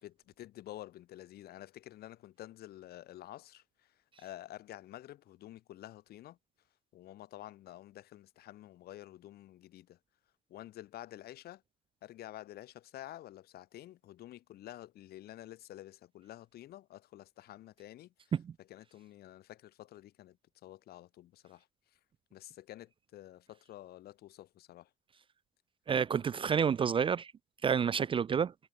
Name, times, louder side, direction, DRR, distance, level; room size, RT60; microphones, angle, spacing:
voice 1, 0.0-6.4 6.9-10.0 10.5-11.6 12.0-18.3 18.6-20.4 20.6-21.7 22.3-24.9, left 14 dB, 65° left, 1.5 m, -50 dB
voice 2, 25.9-27.3 27.6-28.5, right 7 dB, 30° right, 0.5 m, -29 dB
cardioid pair, 110°, 17 cm